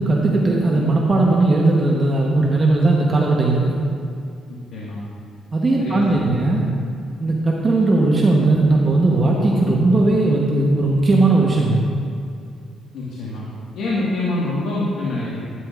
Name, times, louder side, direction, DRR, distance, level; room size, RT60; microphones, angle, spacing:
voice 1, 0.0-3.8 5.5-6.6 7.2-11.8, right 2 dB, 30° right, -2 dB, 1.0 m, -17 dB
voice 2, 4.5-5.0 5.8-6.4 12.9-13.4 13.7-15.4, left 2 dB, 85° left, -7 dB, 1.6 m, -25 dB
11.0 x 10.0 x 2.4 m, 2.4 s
cardioid pair, 105°, 0 cm